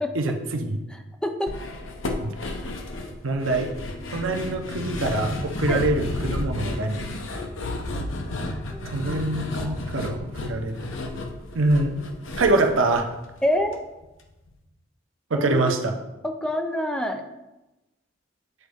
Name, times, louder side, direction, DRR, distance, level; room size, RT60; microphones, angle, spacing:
voice 1, 0.1-0.8 2.2-2.4 3.2-3.7 4.1-7.1 8.9-10.8 11.5-11.9 12.4-13.1 15.3-15.9, right 2 dB, 90° right, 4 dB, 0.7 m, -24 dB
voice 2, 1.2-1.5 5.7-5.8 8.4-9.2 9.6-9.8 13.4-13.8 15.3-15.8 16.2-17.2, left 1 dB, 5° left, 5 dB, 0.4 m, -27 dB
sound 1, 1.5-13.7 14.0-14.1 14.5-14.6, left 2 dB, 75° left, 0.8 m, -32 dB
8.0 x 3.9 x 3.5 m, 0.99 s
head